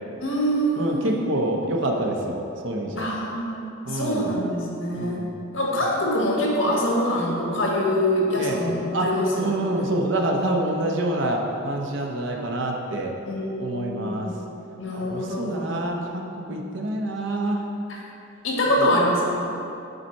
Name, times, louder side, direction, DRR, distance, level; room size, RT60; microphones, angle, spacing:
voice 1, 0.2-1.2 3.0-5.2 5.5-9.5 9.7-9.9 13.3-14.3 14.8-15.9 18.4-19.4, equal, 80° left, -3 dB, 1.5 m, -25 dB
voice 2, 0.8-3.1 3.9-4.3 5.0-5.3 8.4-8.6 8.9-9.1 9.4-13.1 13.6-14.3 14.9-17.6 18.7-18.8, right 1 dB, 70° right, 1 dB, 0.8 m, -27 dB
8.0 x 4.2 x 4.4 m, 2.7 s
head